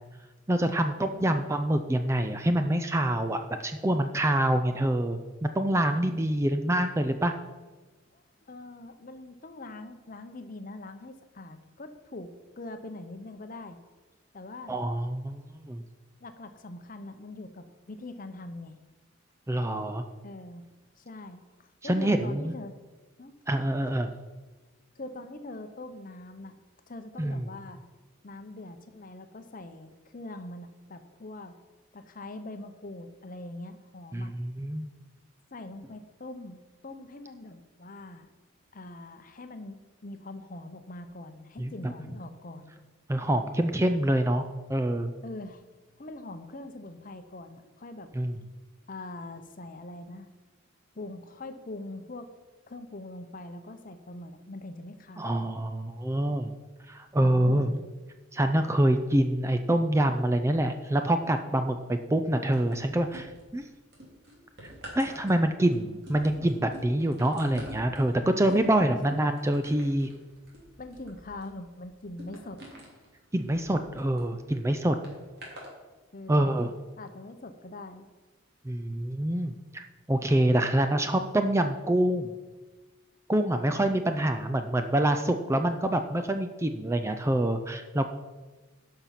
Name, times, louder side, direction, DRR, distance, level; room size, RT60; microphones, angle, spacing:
voice 1, 0.5-7.3 14.7-15.8 19.5-20.0 21.8-22.5 23.5-24.1 27.2-27.4 34.1-34.9 41.6-41.9 43.1-44.4 44.7-45.1 48.1-48.4 55.2-56.5 56.9-57.7 58.3-63.7 64.6-70.1 73.3-75.0 76.3-76.7 78.6-82.3 83.3-88.1, right 1 dB, 15° right, 7 dB, 0.4 m, -26 dB
voice 2, 1.1-1.4 8.1-12.3 12.6-13.8 14.3-14.8 16.2-18.8 20.2-20.6 21.0-22.7 23.2-23.3 24.9-26.6 26.9-27.8 28.2-31.5 31.9-34.3 35.5-38.3 38.7-42.7 45.2-45.6 46.0-48.1 48.9-50.3 50.9-52.3 52.7-55.4 57.2-57.8 68.6-69.0 70.8-72.6 76.1-76.6 77.0-78.1, left 2 dB, 40° left, 8 dB, 0.8 m, -43 dB
sound 1, 62.5-63.6 63.9-74.3 75.0-75.7 76.5-76.6, right 1 dB, 50° right, 2.7 m, -47 dB
12.0 x 5.7 x 5.8 m, 1.3 s
head